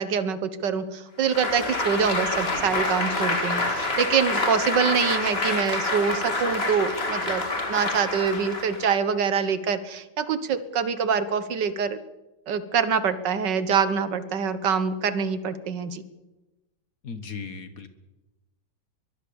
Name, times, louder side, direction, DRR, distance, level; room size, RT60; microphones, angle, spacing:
voice 1, 0.0-12.0 12.5-16.0, right 6 dB, 75° right, 13 dB, 1.9 m, -25 dB
Applause, 1.2-9.0, left 2 dB, 35° left, 2.8 m, -27 dB
voice 2, 17.0-17.9, left 5 dB, 55° left, 10 dB, 2.1 m, -36 dB
22.5 x 22.5 x 7.1 m, 1.1 s
omnidirectional pair, 1.9 m